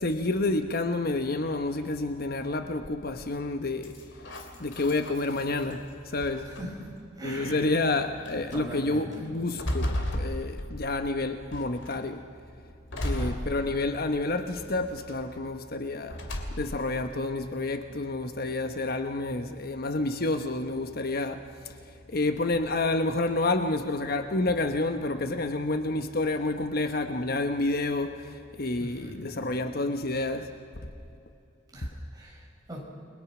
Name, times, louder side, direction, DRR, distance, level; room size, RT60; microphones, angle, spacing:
voice 1, 0.0-3.9 4.6-6.5 7.2-12.2 13.0-16.2 16.6-21.8 22.1-30.5, left 2 dB, 50° left, 1.1 m, -29 dB
sound 1, 3.8-5.7 6.2-6.9 7.7-7.8 8.2-8.6 9.1-11.1 11.5-12.0 12.9-14.1 14.5-15.1 16.1-16.9, equal, 70° left, 2.8 m, -34 dB
voice 2, 6.5-6.8 7.2-7.8 8.5-9.3 13.1-13.5 28.8-29.3 31.7-32.8, equal, 20° right, 5.9 m, -41 dB
30.0 x 22.0 x 6.1 m
head